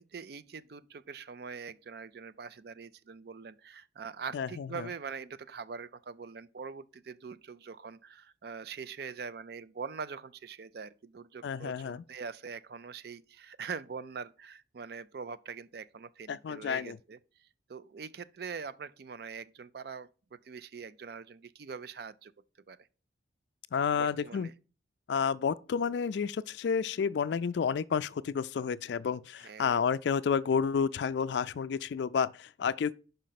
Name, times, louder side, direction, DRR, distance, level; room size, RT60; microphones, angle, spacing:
voice 1, 0.0-22.3 22.7-22.9 23.9-24.5 29.4-29.9, right 5 dB, 55° right, 0.4 m, -43 dB
voice 2, 4.3-4.9 11.4-12.0 16.3-17.0 23.7-24.5 25.1-32.9, left 6 dB, 65° left, 0.3 m, -30 dB
5.4 x 5.1 x 5.7 m
head